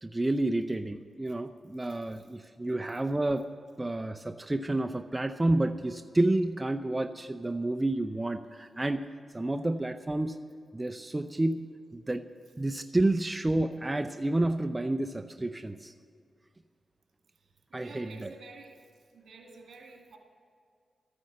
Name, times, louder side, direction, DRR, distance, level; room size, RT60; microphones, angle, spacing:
voice 1, 0.0-3.5 3.8-9.1 9.3-10.4 10.7-12.2 12.6-15.9 17.7-18.3, right 2 dB, 20° right, 8 dB, 0.5 m, -30 dB
voice 2, 17.7-18.8 19.1-20.2, right 4 dB, 80° right, 2 dB, 2.0 m, -50 dB
13.0 x 9.5 x 7.6 m, 2.2 s
cardioid pair, 65°, 0 cm